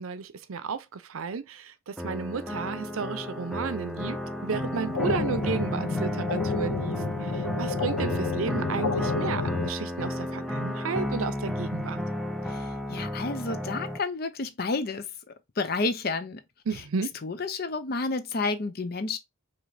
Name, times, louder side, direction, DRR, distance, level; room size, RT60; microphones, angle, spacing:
voice 1, 0.0-12.0 16.7-17.1, right 5 dB, 85° right, 0.5 m, -33 dB
sound 1, 2.0-14.0, left 1 dB, ahead, 0.4 m, -33 dB
sound 2, 4.5-9.7, left 4 dB, 85° left, 0.7 m, -31 dB
voice 2, 12.9-15.1 15.6-16.4 17.2-19.2, left 3 dB, 45° left, 0.6 m, -30 dB
4.8 x 2.9 x 2.6 m
head